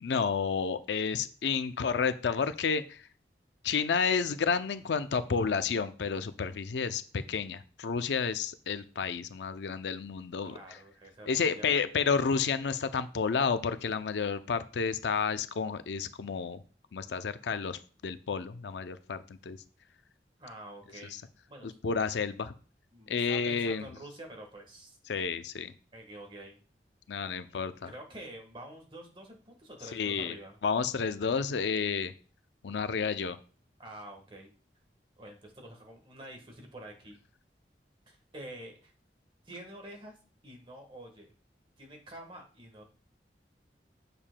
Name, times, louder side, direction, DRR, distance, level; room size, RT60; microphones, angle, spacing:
voice 1, 0.0-3.0 3.6-10.5 11.3-16.6 16.9-19.6 21.6-22.5 23.1-23.9 25.1-25.7 27.1-27.9 29.9-30.4 30.6-32.1 32.6-33.4, left 5 dB, 85° left, 11 dB, 0.5 m, -31 dB
voice 2, 10.4-11.8 20.4-21.2 21.5-21.7 22.9-25.0 25.9-26.6 27.9-30.6 33.8-34.5 35.2-37.2 38.1-38.9 39.4-40.2 40.4-41.3 41.8-42.8, right 1 dB, 30° right, 2 dB, 1.4 m, -47 dB
7.3 x 6.7 x 2.2 m, 0.39 s
head